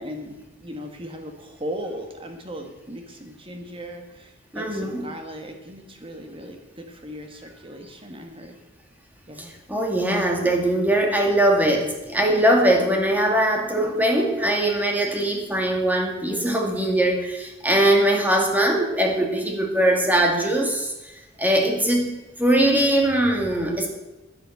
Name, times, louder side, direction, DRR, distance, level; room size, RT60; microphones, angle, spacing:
voice 1, 0.0-8.6 9.3-9.5, equal, 30° right, 4 dB, 1.6 m, -37 dB
voice 2, 4.5-5.0 9.4-20.9 21.4-23.9, right 1 dB, 10° right, 1 dB, 2.2 m, -21 dB
10.5 x 10.0 x 7.9 m, 1.0 s
head